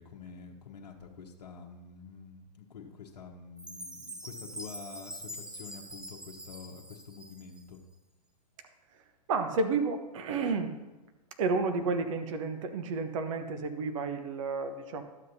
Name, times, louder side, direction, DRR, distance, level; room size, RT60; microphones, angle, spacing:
voice 1, 0.0-7.8, left 5 dB, 70° left, 1 dB, 1.1 m, -47 dB
Chime, 3.6-7.8, equal, 5° right, 0.5 m, -44 dB
voice 2, 9.3-10.7 11.4-15.0, right 4 dB, 50° right, 7 dB, 1.1 m, -31 dB
12.0 x 7.6 x 2.8 m, 1.1 s
hypercardioid pair, 120°, 21 cm